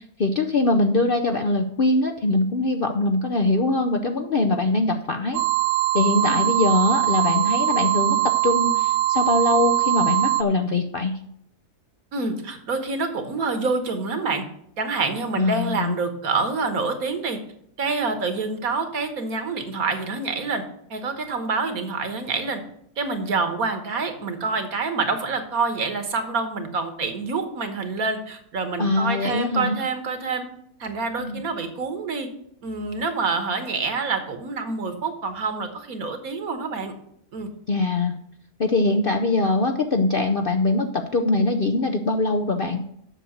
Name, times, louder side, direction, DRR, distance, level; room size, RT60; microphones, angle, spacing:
voice 1, 0.2-5.4 5.9-8.2 8.4-11.1 15.4-15.9 28.8-29.8 31.2-31.4 37.7-38.1 38.6-42.8, left 2 dB, 50° left, 5 dB, 0.7 m, -22 dB
sound 1, 5.3-10.4, right 17 dB, 90° right, 1.1 m, -22 dB
voice 2, 12.1-14.4 14.8-17.4 17.8-20.6 20.9-22.6 23.0-30.5 30.8-32.3 32.6-36.9 37.3-37.5, right 4 dB, 65° right, 8 dB, 1.7 m, -27 dB
7.6 x 6.5 x 8.0 m, 0.72 s
omnidirectional pair, 1.6 m